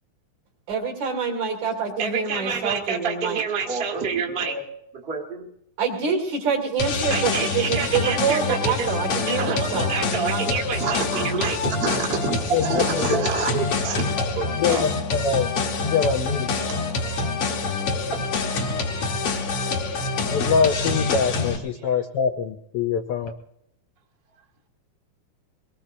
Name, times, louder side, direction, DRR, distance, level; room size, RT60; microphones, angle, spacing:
voice 1, 0.7-3.4 5.8-10.5, right 6 dB, 70° right, -3 dB, 3.8 m, -26 dB
voice 2, 2.0-4.7 4.9-5.5 7.1-14.8 16.7-16.8 18.1-18.6, right 5 dB, 25° right, 0 dB, 1.3 m, -28 dB
sound 1, 6.8-21.6, left 4 dB, 60° left, 2.0 m, -26 dB
voice 3, 12.5-13.2 14.6-15.5 15.8-16.5 20.3-23.3, left 6 dB, 75° left, 5 dB, 1.3 m, -24 dB
23.5 x 19.5 x 2.7 m, 0.74 s
omnidirectional pair, 3.4 m